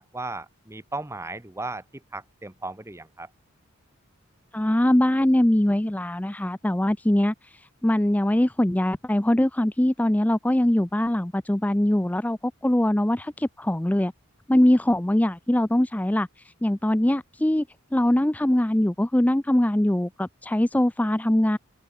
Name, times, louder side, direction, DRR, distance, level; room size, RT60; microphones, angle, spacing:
voice 1, 0.0-1.8 2.1-3.3, right 2 dB, 15° right, 1.2 m, -36 dB
voice 2, 4.5-14.1 14.5-17.7 17.9-21.6, left 1 dB, 5° left, 0.4 m, -22 dB
head